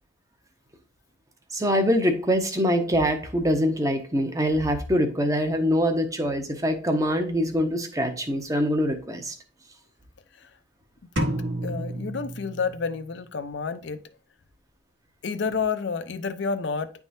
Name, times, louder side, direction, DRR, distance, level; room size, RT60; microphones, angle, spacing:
voice 1, 1.5-9.3, equal, 15° right, 0.8 m, -24 dB
sound 1, 11.2-13.0, right 1 dB, 60° right, 1.1 m, -30 dB
voice 2, 11.6-14.0 15.2-16.9, left 5 dB, 60° left, 0.5 m, -29 dB
10.0 x 3.6 x 2.6 m
head